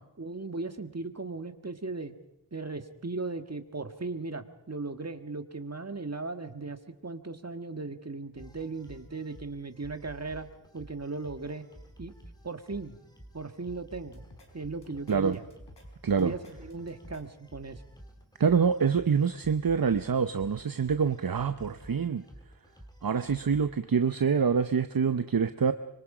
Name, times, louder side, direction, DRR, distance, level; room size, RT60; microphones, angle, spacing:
voice 1, 0.2-2.1 2.5-10.5 10.7-11.6 12.0-12.1 12.4-12.9 13.3-14.2 14.5-15.4 16.2-17.8, right 3 dB, 35° right, 8 dB, 1.7 m, -37 dB
sound 1, 8.4-23.7, right 1 dB, 10° left, 3.5 m, -52 dB
sound 2, 14.0-14.5 14.8-15.8 16.2-17.2, left 2 dB, 75° left, 4.9 m, -53 dB
voice 2, 16.0-16.3 18.4-22.2 23.0-25.7, right 6 dB, 55° right, 10 dB, 0.8 m, -26 dB
25.0 x 24.5 x 5.0 m, 0.86 s
wide cardioid pair, 70°, 42 cm